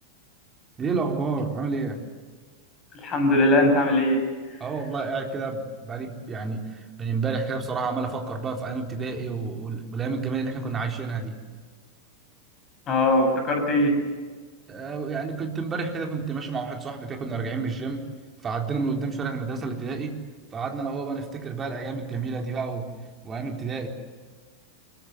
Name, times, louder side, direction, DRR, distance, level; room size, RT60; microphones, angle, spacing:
voice 1, 0.8-2.0 4.6-11.3 14.7-18.1 18.4-20.2 20.5-22.9 23.2-23.9, right 4 dB, 20° right, 2 dB, 4.0 m, -30 dB
voice 2, 2.9-4.2 12.9-14.0, left 1 dB, 30° left, 4 dB, 7.4 m, -20 dB
24.5 x 22.0 x 8.2 m, 1.5 s
figure-of-eight pair, 90°, 0 cm